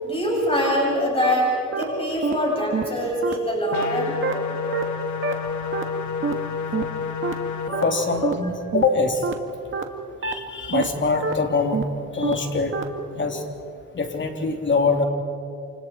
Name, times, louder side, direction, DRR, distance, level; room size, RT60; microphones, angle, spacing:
voice 1, 0.0-4.9 5.4-5.8 7.6-8.1, equal, 20° left, -3 dB, 7.8 m, -25 dB
sound 1, 0.8-0.9 1.2-1.3 1.7-1.8 2.2-2.3 2.7-2.8 3.2-3.3 3.7-3.8 4.2-4.3 4.7-4.8 5.2-5.3 5.7-5.8 6.2-6.3 6.7-6.8 7.2-7.3 7.7-7.8 8.2-8.3 8.7-8.8 9.2-9.3 9.7-9.8 10.2-10.3 10.7-10.8 11.2-11.3 11.7-11.8 12.2-12.3 12.7-12.8, right 5 dB, 40° right, 2.1 m, -25 dB
sound 2, 3.7-7.7, left 6 dB, 70° left, 2.0 m, -29 dB
voice 2, 7.8-9.2 10.2-11.8 12.1-12.8 13.1-13.4 13.9-15.0, left 4 dB, 40° left, 3 dB, 3.4 m, -23 dB
28.5 x 28.0 x 4.6 m, 2.4 s
cardioid pair, 90°, 30 cm